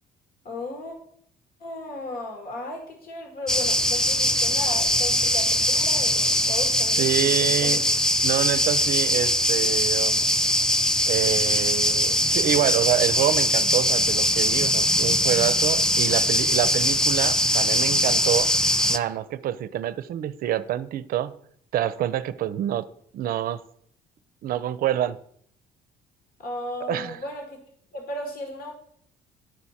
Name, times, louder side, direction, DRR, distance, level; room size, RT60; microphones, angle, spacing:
voice 1, 0.4-1.0 1.6-7.8 26.4-27.6 27.9-28.7, left 2 dB, 65° left, 1.7 m, -35 dB
sound 1, 3.5-19.0, left 1 dB, 5° left, 0.3 m, -22 dB
voice 2, 7.0-7.8 8.2-10.2 11.1-18.5 18.9-21.3 21.7-22.9 23.1-23.6 24.4-25.2 26.9-27.2, right 11 dB, 60° right, 0.5 m, -27 dB
10.5 x 4.6 x 4.2 m
cardioid pair, 110°, 17 cm